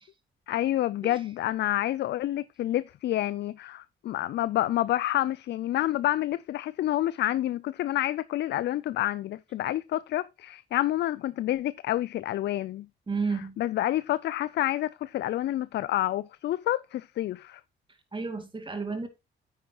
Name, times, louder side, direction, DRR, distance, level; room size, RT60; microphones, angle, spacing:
voice 1, 0.5-12.9 13.6-17.6, left 14 dB, 60° left, 0.4 m, -28 dB
voice 2, 13.1-13.6 18.1-19.1, right 4 dB, 25° right, 2.3 m, -31 dB
9.4 x 9.0 x 2.9 m
cardioid pair, 90°, 20 cm